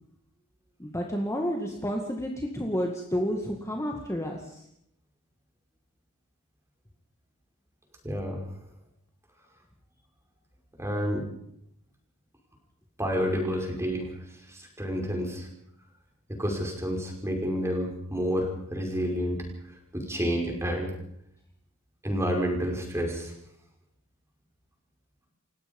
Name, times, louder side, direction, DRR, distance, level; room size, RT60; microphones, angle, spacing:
voice 1, 0.8-4.6, equal, 15° left, 1 dB, 2.1 m, -30 dB
voice 2, 8.0-8.5 10.8-11.3 13.0-14.1 14.5-15.5 16.3-19.5 19.9-20.9 22.0-23.3, equal, 10° right, 1 dB, 5.6 m, -29 dB
29.0 x 16.5 x 5.5 m, 0.74 s
head